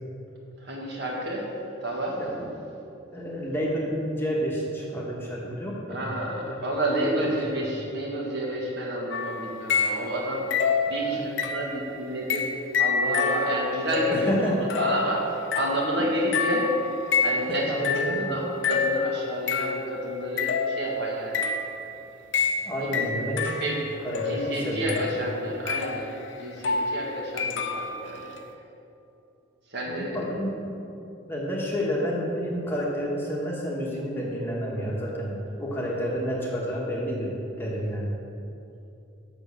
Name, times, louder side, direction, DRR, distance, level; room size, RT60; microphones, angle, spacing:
voice 1, 0.6-1.5 1.8-2.2 5.9-10.5 10.9-12.5 12.8-16.7 17.2-21.9 22.8-23.1 23.6-23.8 24.3-26.1 26.4-28.3 29.7-30.2, equal, 60° right, -3 dB, 1.7 m, -30 dB
voice 2, 2.2-2.6 3.1-6.1 6.4-6.6 7.0-7.3 11.0-11.3 14.1-14.6 17.5-18.4 22.6-23.5 24.0-25.0 29.9-30.7 31.2-38.2, equal, 10° left, -4 dB, 1.2 m, -30 dB
sound 1, 9.1-10.2 10.5-11.8 12.3-20.0 20.4-21.8 22.3-28.1, left 5 dB, 65° left, 0.7 m, -28 dB
7.0 x 6.2 x 7.0 m, 2.8 s
head